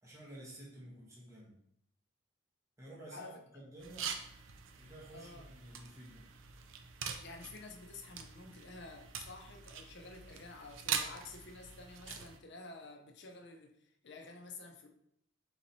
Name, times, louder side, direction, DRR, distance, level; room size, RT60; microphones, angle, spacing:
voice 1, 0.0-1.6 2.8-4.1 4.8-6.2, right 1 dB, 15° right, -5 dB, 1.0 m, -52 dB
sound 1, 3.8-12.4, right 7 dB, 65° right, 0.4 m, -44 dB
voice 2, 5.1-5.5 7.2-14.9, left 3 dB, 55° left, 3 dB, 0.6 m, -51 dB
3.9 x 2.9 x 4.1 m, 0.72 s
head